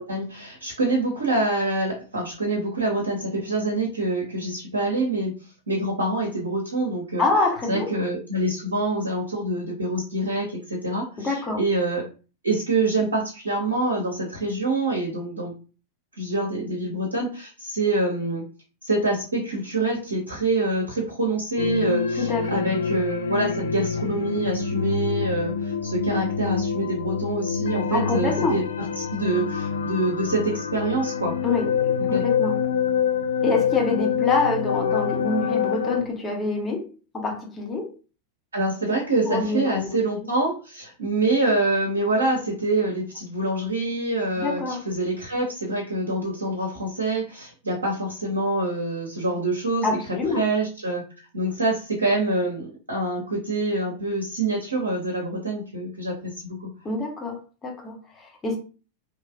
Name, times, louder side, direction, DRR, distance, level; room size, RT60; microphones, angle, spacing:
voice 1, 0.0-7.3 7.7-12.1 12.4-15.5 16.2-18.5 18.8-31.4 32.1-32.2 38.5-50.0 50.3-56.7, right 2 dB, 75° right, 0.7 m, -26 dB
voice 2, 7.2-7.9 11.2-11.6 22.2-22.6 27.9-28.7 31.4-32.6 33.4-37.9 39.2-39.9 40.2-40.3 44.4-44.8 49.8-50.4 56.8-58.6, left 3 dB, 20° left, 0.8 m, -26 dB
sound 1, 21.6-36.0, left 6 dB, 70° left, 0.3 m, -26 dB
2.9 x 2.3 x 2.4 m
figure-of-eight pair, 90°, 0 cm